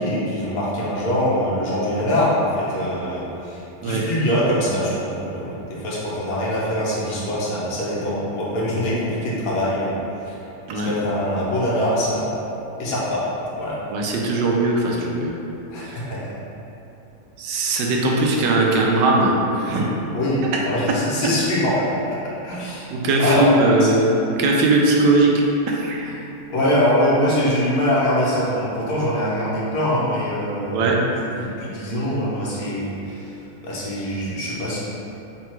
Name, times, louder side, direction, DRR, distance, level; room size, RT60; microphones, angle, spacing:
voice 1, 0.0-10.4 10.7-12.4 12.8-13.3 13.6-13.8 15.7-16.3 20.1-22.2 22.4-22.9 23.2-23.5 23.8-23.9 26.0-26.1 26.5-31.0 31.3-33.3 33.6-34.8, left 1 dB, 75° left, -7 dB, 1.4 m, -23 dB
voice 2, 13.9-15.3 15.8-16.0 17.4-19.9 22.9-24.1 24.4-26.1 30.7-31.0, right 2 dB, 85° right, -1 dB, 1.2 m, -19 dB
3.7 x 2.2 x 4.3 m, 3.0 s
omnidirectional pair, 1.8 m